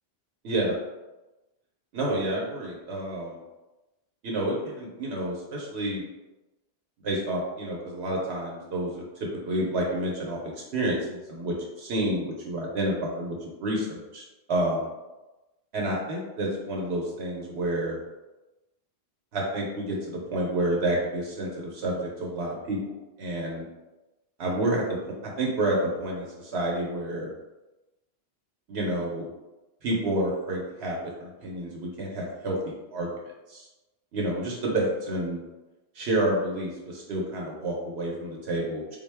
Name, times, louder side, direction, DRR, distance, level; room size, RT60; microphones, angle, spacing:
voice 1, 1.9-3.2 4.2-6.0 7.0-10.4 10.7-14.2 14.5-14.9 15.7-18.0 19.3-22.8 23.2-23.6 24.4-25.0 25.4-27.3 28.7-29.3 29.8-33.1 33.5-33.7 34.1-35.4 35.9-39.0, right 1 dB, 75° right, -2 dB, 0.9 m, -29 dB
3.6 x 2.1 x 3.3 m, 1.1 s
omnidirectional pair, 1.1 m